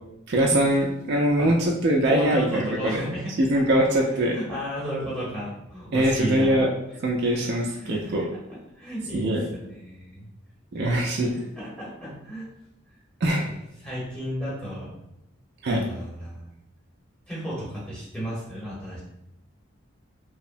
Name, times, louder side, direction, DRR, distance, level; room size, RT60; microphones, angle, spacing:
voice 1, 0.3-3.0 3.4-4.4 5.9-6.7 7.0-8.2 9.1-9.4 10.7-11.3 13.2-13.5 15.6-15.8, right 1 dB, 50° right, -2 dB, 0.3 m, -22 dB
voice 2, 2.0-3.5 4.1-6.7 7.8-8.2 8.5-10.3 11.3-12.5 13.8-15.0 15.7-16.4 17.3-19.0, equal, 5° left, -8 dB, 1.0 m, -33 dB
2.8 x 2.0 x 2.5 m, 0.86 s
head